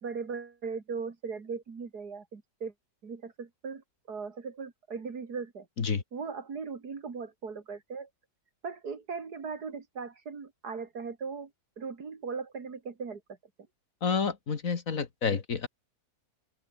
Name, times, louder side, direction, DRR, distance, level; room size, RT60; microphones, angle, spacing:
voice 1, 0.0-2.7 3.0-5.7 6.1-8.1 8.6-11.5 11.8-13.2, right 5 dB, 75° right, 3.0 m, -38 dB
voice 2, 14.0-15.7, left 5 dB, 60° left, 2.1 m, -29 dB
open air
omnidirectional pair, 1.7 m